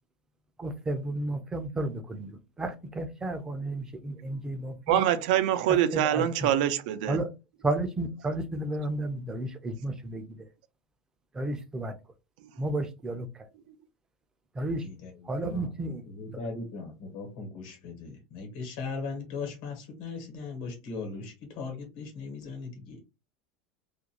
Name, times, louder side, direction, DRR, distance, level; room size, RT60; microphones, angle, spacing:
voice 1, 0.6-5.0 5.9-6.5 7.1-7.3 7.6-10.5 11.3-11.9 12.6-13.3 14.6-14.8 15.3-16.0 16.3-16.4, right 2 dB, 15° right, 0.4 m, -32 dB
voice 2, 4.9-7.2, right 11 dB, 75° right, 0.4 m, -25 dB
voice 3, 16.1-23.0, left 4 dB, 65° left, 1.1 m, -38 dB
2.4 x 2.2 x 2.9 m
supercardioid pair, 140°, 5 cm